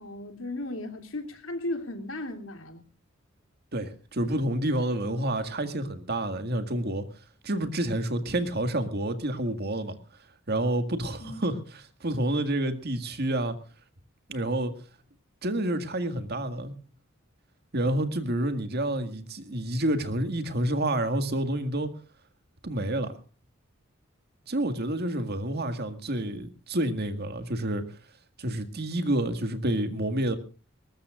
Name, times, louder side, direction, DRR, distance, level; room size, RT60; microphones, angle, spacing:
voice 1, 0.0-2.8 11.2-11.5, left 1 dB, 75° left, 3.0 m, -36 dB
voice 2, 3.7-7.0 7.4-10.0 10.5-13.6 14.3-14.7 15.4-16.7 17.7-21.9 22.6-23.1 24.5-27.8 28.4-30.4, right 1 dB, 55° right, 1.9 m, -29 dB
22.0 x 20.0 x 2.5 m
head